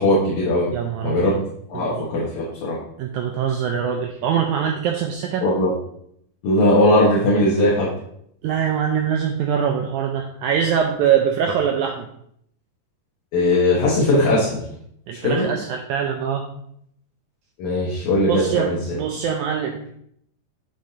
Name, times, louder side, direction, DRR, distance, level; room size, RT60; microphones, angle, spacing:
voice 1, 0.0-0.7 1.0-1.3 1.7-2.8 5.4-5.7 6.4-7.9 13.3-14.6 15.2-15.5 17.6-18.8, left 1 dB, 65° left, -5 dB, 2.4 m, -19 dB
voice 2, 0.7-1.3 1.7-2.0 3.0-5.5 8.4-12.1 15.1-16.5 18.3-19.9, right 8 dB, 90° right, 3 dB, 1.7 m, -23 dB
7.3 x 6.3 x 2.8 m, 0.70 s
omnidirectional pair, 4.1 m